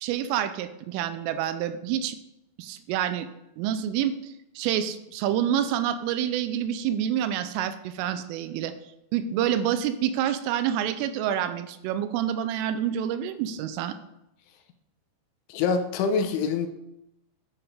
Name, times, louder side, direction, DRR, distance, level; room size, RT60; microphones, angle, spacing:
voice 1, 0.0-2.2 2.6-3.3 3.6-8.7 9.1-14.0, right 10 dB, 90° right, 11 dB, 3.2 m, -27 dB
voice 2, 15.5-16.7, left 5 dB, 85° left, 6 dB, 3.1 m, -25 dB
10.0 x 6.0 x 4.9 m, 0.84 s
omnidirectional pair, 5.7 m